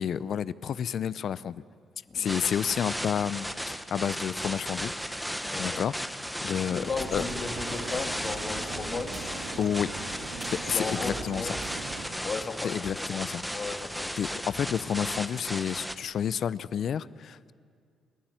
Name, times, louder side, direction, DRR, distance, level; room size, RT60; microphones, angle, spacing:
voice 1, 0.0-1.6 2.1-4.9 5.6-5.9 6.4-7.2 9.6-9.9 10.5-11.5 12.6-13.4 14.2-17.5, left 8 dB, 60° left, 17 dB, 0.6 m, -30 dB
voice 2, 2.1-2.4 5.4-5.8 6.5-9.6 10.7-11.7 12.0-13.2 13.5-14.7, left 4 dB, 40° left, 4 dB, 2.3 m, -36 dB
sound 1, 2.2-16.0, equal, ahead, 1.1 m, -35 dB
sound 2, 6.7-12.1, right 4 dB, 85° right, 3.1 m, -40 dB
28.0 x 12.0 x 9.2 m, 2.1 s
cardioid pair, 90°, 0 cm